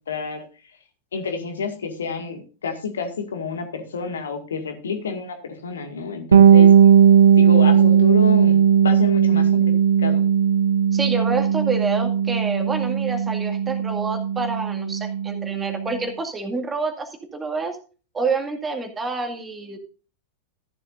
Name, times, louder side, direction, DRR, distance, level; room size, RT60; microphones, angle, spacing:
voice 1, 0.1-0.4 1.1-6.7 7.3-9.7 10.0-10.2, left 5 dB, 65° left, 6 dB, 2.0 m, -29 dB
Bass guitar, 6.3-15.9, right 8 dB, 70° right, 1.3 m, -17 dB
voice 2, 10.9-17.8 18.1-19.8, right 3 dB, 15° right, 5 dB, 2.1 m, -28 dB
14.0 x 11.0 x 2.5 m, 0.35 s
figure-of-eight pair, 90°, 0 cm